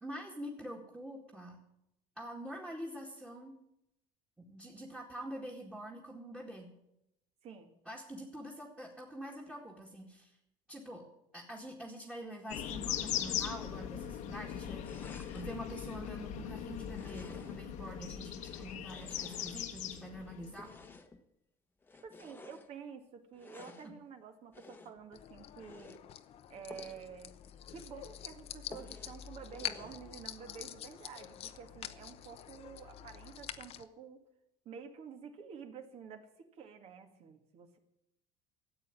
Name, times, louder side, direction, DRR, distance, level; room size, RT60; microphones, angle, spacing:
voice 1, 0.0-1.6 2.2-3.5 4.4-6.7 7.9-10.3 10.7-11.0 11.3-20.7 23.8-23.9, equal, 5° right, -3 dB, 2.1 m, -45 dB
voice 2, 7.4-7.7 22.0-26.0 26.5-27.4 27.7-34.2 34.7-36.3 36.5-37.8, right 6 dB, 50° right, 6 dB, 2.1 m, -50 dB
sound 1, 12.5-21.0, left 10 dB, 65° left, 1.4 m, -40 dB
sound 2, 14.8-15.6 16.8-17.7 18.3-20.0 20.5-21.2 21.8-22.7 23.3-23.9 24.5-25.1 25.5-26.0 26.7-27.1 27.4-27.5 27.9-28.0 28.7-29.2 29.5-30.0, left 3 dB, 15° left, 1.2 m, -53 dB
sound 3, 25.1-33.8, left 11 dB, 50° left, 0.9 m, -46 dB
13.5 x 8.5 x 9.6 m, 0.85 s
cardioid pair, 135°, 14 cm